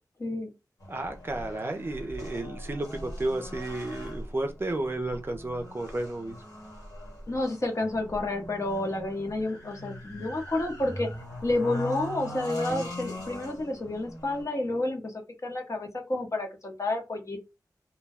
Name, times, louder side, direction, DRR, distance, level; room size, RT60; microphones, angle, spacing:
sound 1, 0.8-14.4, equal, 65° left, 1.4 m, -41 dB
voice 1, 0.9-6.4 12.7-12.8, right 2 dB, 30° right, 0.5 m, -32 dB
voice 2, 7.3-11.1 11.4-15.1 15.4-17.4, left 2 dB, 45° left, 0.9 m, -30 dB
2.3 x 2.1 x 3.4 m
wide cardioid pair, 75°, 7 cm